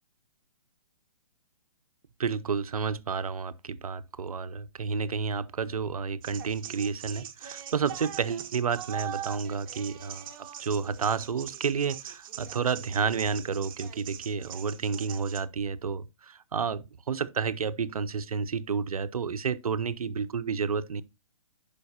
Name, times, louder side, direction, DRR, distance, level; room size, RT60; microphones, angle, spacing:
voice 1, 2.2-21.0, right 5 dB, 85° right, 0.7 m, -30 dB
sound 1, 6.2-15.4, right 10 dB, 35° right, 1.0 m, -41 dB
10.5 x 5.2 x 2.8 m
hypercardioid pair, 145°, 18 cm